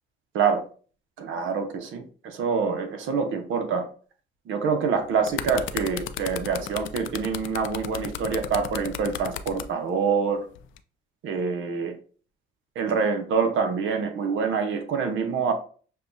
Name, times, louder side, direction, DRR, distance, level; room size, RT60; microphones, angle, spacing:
voice 1, 1.2-3.9 4.5-10.5 11.2-11.9 12.7-15.5, right 5 dB, 80° right, 7 dB, 0.8 m, -26 dB
sound 1, 5.0-9.7 10.5-10.8, left 10 dB, 75° left, 0.4 m, -34 dB
6.5 x 2.3 x 2.6 m, 0.41 s
cardioid pair, 90°, 20 cm